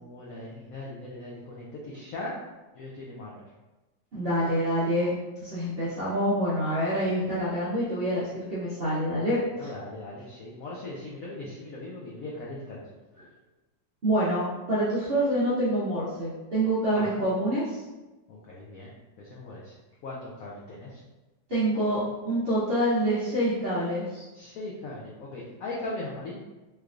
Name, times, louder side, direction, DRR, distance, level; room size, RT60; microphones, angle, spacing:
voice 1, 0.0-2.3 2.7-3.4 9.1-12.8 16.9-17.3 18.3-18.9 19.2-19.8 20.0-21.0 24.3-26.4, left 2 dB, 75° left, -5 dB, 0.8 m, -39 dB
voice 2, 4.1-9.7 13.2-13.3 14.0-17.8 21.5-24.3, right 1 dB, 50° right, -10 dB, 0.7 m, -27 dB
3.4 x 3.2 x 2.4 m, 1.1 s
omnidirectional pair, 2.0 m